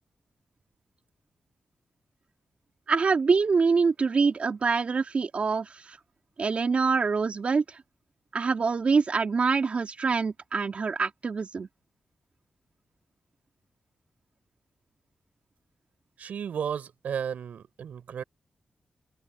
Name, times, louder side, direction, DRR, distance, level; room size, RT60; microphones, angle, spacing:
voice 1, 2.9-6.0 6.4-7.8 8.3-11.7, right 5 dB, 55° right, 3.5 m, -25 dB
voice 2, 16.2-18.2, right 8 dB, 90° right, 4.9 m, -33 dB
cardioid pair, 85°, 3 cm